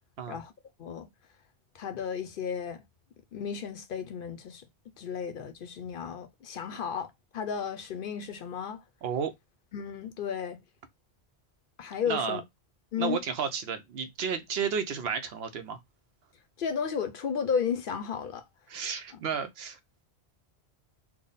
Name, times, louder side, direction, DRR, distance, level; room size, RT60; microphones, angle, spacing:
voice 1, 1.7-2.8 3.3-4.6 5.0-8.8 9.7-10.6 11.8-12.4 12.9-13.2 16.6-18.4, left 7 dB, 60° left, 0.7 m, -33 dB
voice 2, 9.0-9.3 12.1-12.4 13.0-15.8 18.7-19.8, right 6 dB, 70° right, 0.8 m, -32 dB
3.4 x 2.1 x 3.9 m
omnidirectional pair, 1.1 m